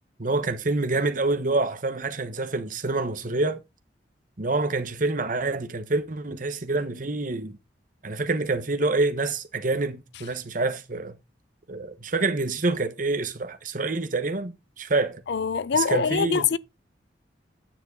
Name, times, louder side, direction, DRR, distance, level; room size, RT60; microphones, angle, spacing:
voice 1, 0.2-3.6 4.4-7.6 8.0-11.1 11.7-15.2 15.7-16.5, right 3 dB, 50° right, 1.2 m, -27 dB
voice 2, 15.3-16.6, left 6 dB, 70° left, 0.5 m, -24 dB
9.3 x 7.4 x 3.9 m
head